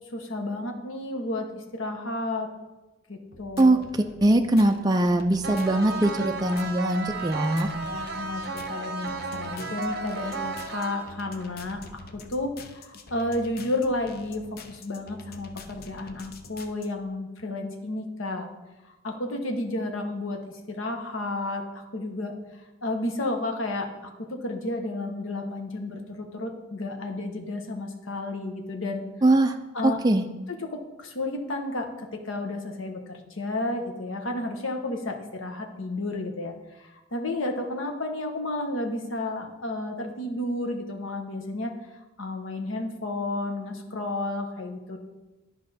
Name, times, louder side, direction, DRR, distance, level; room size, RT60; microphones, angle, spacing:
voice 1, 0.1-2.5 3.1-3.8 7.8-18.5 19.0-20.4 20.7-22.3 22.8-29.1 29.7-30.0 30.7-36.5 36.8-41.8 42.2-45.0, left 2 dB, 75° left, 4 dB, 1.0 m, -32 dB
sound 1, 3.3-16.9, left 3 dB, 50° left, 0.6 m, -47 dB
voice 2, 4.2-7.7 29.2-29.6 29.8-30.3, right 1 dB, 20° right, 4 dB, 0.4 m, -21 dB
sound 2, 5.4-11.4, right 3 dB, 55° right, 0.8 m, -34 dB
10.5 x 5.3 x 4.1 m, 1.1 s
head